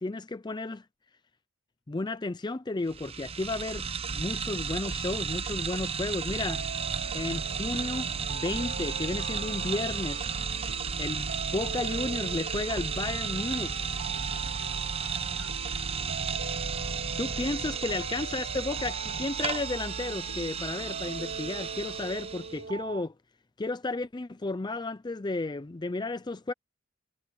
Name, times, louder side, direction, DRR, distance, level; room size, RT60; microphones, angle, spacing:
voice 1, 0.0-0.8 1.9-3.8 4.1-6.6 7.1-10.3 11.0-13.9 17.2-23.1 23.6-26.5, left 2 dB, 20° left, 0.5 m, -33 dB
sound 1, 2.9-22.6, right 6 dB, 30° right, 0.7 m, -33 dB
sound 2, 6.4-23.0, right 4 dB, 65° right, 2.4 m, -42 dB
voice 2, 14.1-15.7, left 3 dB, 80° left, 5.0 m, -54 dB
head